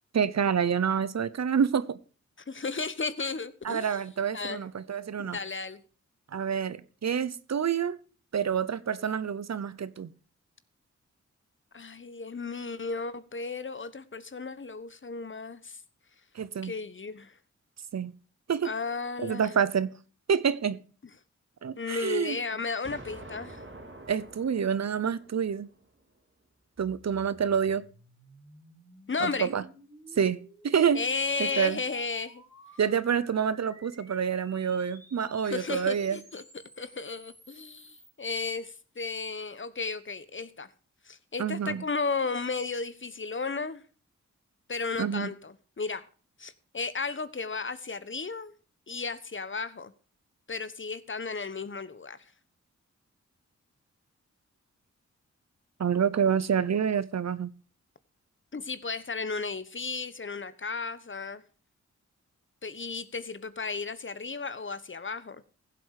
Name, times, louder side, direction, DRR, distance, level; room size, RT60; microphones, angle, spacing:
voice 1, 0.1-2.0 3.6-5.4 6.3-8.0 8.3-10.1 16.4-16.7 17.9-18.1 18.5-18.7 19.2-19.9 20.3-20.8 21.6-22.4 24.1-25.7 26.8-27.8 29.2-29.6 30.2-31.0 31.4-31.8 32.8-36.2 41.4-41.8 45.0-45.3 55.8-57.5, right 7 dB, 65° right, 0.8 m, -27 dB
voice 2, 2.5-4.0 4.3-4.6 5.2-5.8 11.7-15.8 16.6-17.4 18.6-19.5 21.8-23.6 29.1-29.5 30.9-32.4 35.4-36.4 36.8-40.7 41.0-43.8 44.7-46.1 46.4-48.5 48.9-49.9 50.5-52.2 58.5-61.4 62.6-65.4, left 4 dB, 40° left, 1.2 m, -34 dB
Explosion, 22.8-25.8, right 2 dB, 40° right, 3.2 m, -47 dB
sound 1, 26.8-38.1, right 1 dB, 10° right, 3.7 m, -54 dB
15.5 x 7.8 x 4.8 m
cardioid pair, 55°, 29 cm